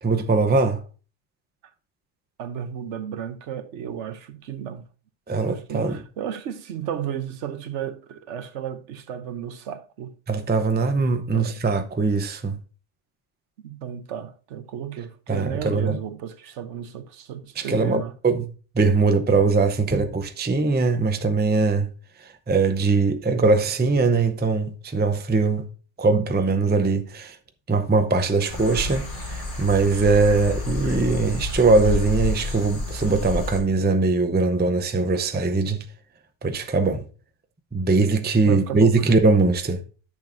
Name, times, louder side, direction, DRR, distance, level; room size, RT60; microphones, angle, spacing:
voice 1, 0.0-0.8 5.3-6.0 10.3-12.6 15.3-16.0 17.6-18.5 18.7-21.9 22.5-25.7 26.0-27.4 27.7-35.8 36.4-37.0 37.7-39.8, right 3 dB, 10° right, 0.5 m, -21 dB
voice 2, 2.4-4.9 5.4-10.2 11.3-11.6 13.6-18.1 38.4-39.0, right 9 dB, 75° right, 1.1 m, -33 dB
sound 1, 28.5-33.6, left 2 dB, 45° left, 2.2 m, -29 dB
10.5 x 6.6 x 2.6 m
omnidirectional pair, 1.2 m